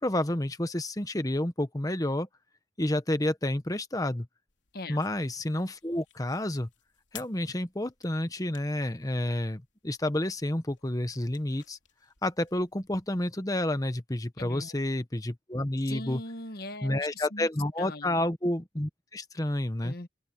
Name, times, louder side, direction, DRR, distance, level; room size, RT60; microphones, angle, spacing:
voice 1, 0.0-2.3 2.8-4.3 4.9-6.7 7.1-11.8 12.2-16.2 16.8-19.9, left 1 dB, 20° left, 1.1 m, -30 dB
sound 1, 4.5-13.3, left 12 dB, 80° left, 3.2 m, -56 dB
voice 2, 14.4-14.8 15.9-17.5 17.8-18.2 19.8-20.1, left 2 dB, 55° left, 1.5 m, -40 dB
open air
head